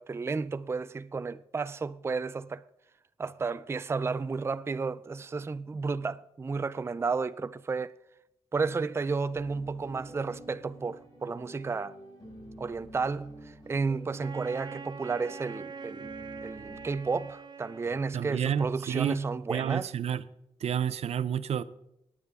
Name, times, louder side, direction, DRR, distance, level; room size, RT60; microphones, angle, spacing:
voice 1, 0.0-2.6 3.2-7.9 8.5-11.9 12.6-16.1 16.4-19.9, right 4 dB, 25° right, 0.4 m, -32 dB
sound 1, 9.4-17.0, right 1 dB, 35° left, 5.7 m, -49 dB
Wind instrument woodwind instrument, 14.2-18.6, right 5 dB, 40° right, 0.8 m, -44 dB
voice 2, 18.1-19.2 19.5-20.2 20.6-21.6, right 8 dB, 75° right, 0.5 m, -29 dB
18.0 x 9.7 x 3.6 m
cardioid pair, 90°, 11 cm